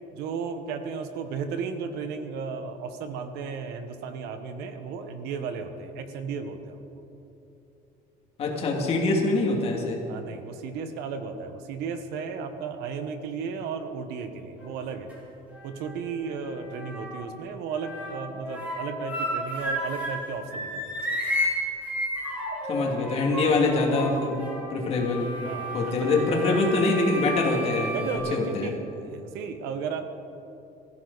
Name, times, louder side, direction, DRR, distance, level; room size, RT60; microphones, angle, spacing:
voice 1, 0.1-6.8 10.0-15.1 15.6-21.0 25.4-26.6 27.9-30.0, right 5 dB, 90° right, 7 dB, 1.5 m, -34 dB
voice 2, 8.4-10.0 22.7-24.4 24.7-25.3 25.7-28.0 28.3-28.7, left 3 dB, 40° left, -1 dB, 2.7 m, -24 dB
sound 1, 14.6-15.2 15.5-17.4 17.7-20.2 20.5-28.2, equal, 10° right, 4.2 m, -33 dB
23.0 x 15.0 x 4.2 m, 2.9 s
cardioid pair, 180°, 16 cm